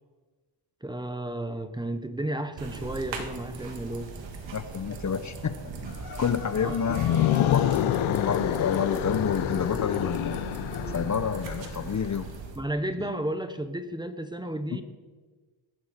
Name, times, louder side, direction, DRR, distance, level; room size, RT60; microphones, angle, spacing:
voice 1, 0.8-4.2 6.6-6.7 12.6-14.8, right 1 dB, 10° right, 10 dB, 1.2 m, -32 dB
sound 1, 2.6-12.6, right 4 dB, 65° right, 2.1 m, -39 dB
voice 2, 4.5-5.7 6.2-10.4 10.9-12.3 13.0-13.1, left 7 dB, 35° left, 11 dB, 0.9 m, -29 dB
sound 2, 5.8-11.0, left 4 dB, 50° left, 4.4 m, -42 dB
sound 3, 6.8-11.9, left 12 dB, 80° left, 0.8 m, -27 dB
20.5 x 11.5 x 4.4 m, 1.4 s
cardioid pair, 80°, 47 cm